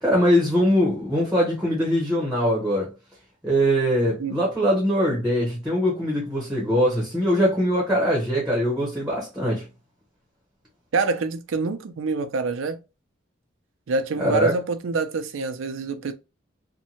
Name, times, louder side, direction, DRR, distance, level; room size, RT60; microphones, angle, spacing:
voice 1, 0.0-2.9 3.4-9.7 14.2-14.5, equal, 5° right, 0.8 m, -22 dB
voice 2, 10.9-12.8 13.9-16.1, right 4 dB, 80° right, 0.4 m, -26 dB
2.7 x 2.1 x 2.8 m
head